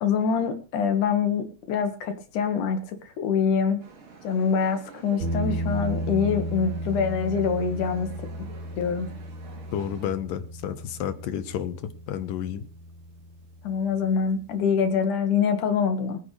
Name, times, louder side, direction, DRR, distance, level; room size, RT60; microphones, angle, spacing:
voice 1, 0.0-3.8 4.2-8.1 8.8-9.1 13.6-16.2, left 6 dB, 70° left, 7 dB, 3.2 m, -25 dB
sound 1, 3.8-10.1, right 5 dB, 80° right, 4.8 m, -48 dB
sound 2, 5.2-14.1, right 1 dB, 65° right, 3.7 m, -34 dB
voice 2, 9.7-11.8 12.1-12.6, left 10 dB, 90° left, 10 dB, 2.9 m, -31 dB
24.5 x 9.2 x 3.3 m, 0.34 s
omnidirectional pair, 3.8 m